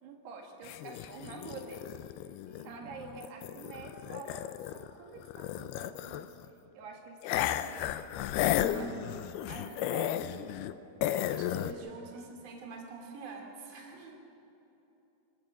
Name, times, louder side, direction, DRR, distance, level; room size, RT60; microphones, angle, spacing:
voice 1, 0.0-2.0 2.6-6.3 6.7-8.1 8.7-9.1 9.6-10.6 12.1-12.3 13.9-14.2, right 4 dB, 80° right, 1 dB, 4.0 m, -48 dB
sound 1, 0.7-4.9 5.2-6.5 7.2-10.7 11.0-11.7, left 12 dB, 80° left, 2.5 m, -34 dB
voice 2, 2.4-3.2 8.4-10.0 11.0-14.1, right 4 dB, 25° right, 1 dB, 2.2 m, -46 dB
26.0 x 14.0 x 7.5 m, 3.0 s
omnidirectional pair, 4.7 m